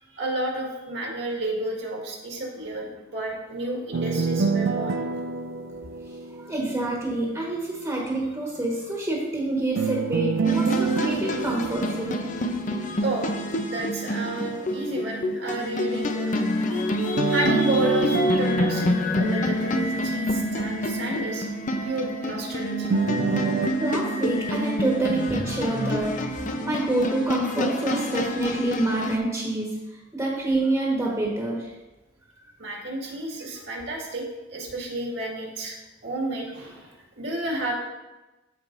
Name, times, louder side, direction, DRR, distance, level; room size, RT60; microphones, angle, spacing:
voice 1, 0.1-5.0 13.0-13.4 13.7-16.4 17.3-21.5 21.8-22.9 32.6-34.2 34.5-35.8 36.0-37.7, right 1 dB, 70° right, -2 dB, 1.8 m, -31 dB
sound 1, 3.9-7.0 9.8-13.0 17.2-20.2 22.9-23.7, right 4 dB, 85° right, 0.5 m, -28 dB
voice 2, 6.0-12.2 16.7-16.8 21.8-21.9 23.4-31.7, right 2 dB, 15° right, -3 dB, 1.4 m, -27 dB
sound 2, 10.4-29.2, left 1 dB, 40° left, 0.6 m, -27 dB
13.5 x 4.7 x 2.6 m, 1.1 s
head